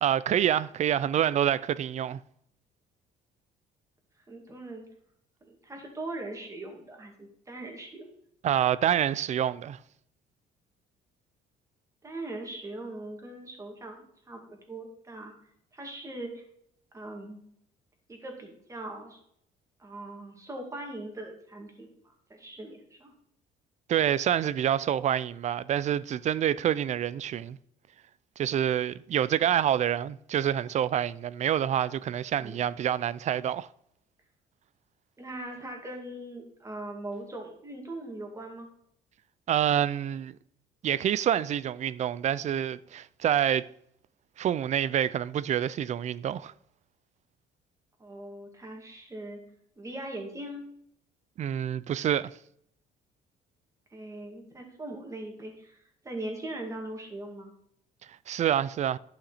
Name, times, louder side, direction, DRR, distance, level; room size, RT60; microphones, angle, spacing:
voice 1, 0.0-2.2 8.4-9.8 23.9-27.6 28.4-33.7 39.5-40.4 40.8-43.7 44.4-46.5 51.4-52.3 58.3-59.0, right 10 dB, 45° right, 0.4 m, -27 dB
voice 2, 4.3-4.9 5.4-8.1 12.0-15.3 15.7-16.4 16.9-17.4 18.1-19.2 19.8-23.1 32.4-32.6 35.2-38.7 48.0-49.4 49.8-50.6 53.9-57.5, right 1 dB, 20° right, 2.2 m, -40 dB
11.5 x 5.8 x 4.1 m
cardioid pair, 110°, 17 cm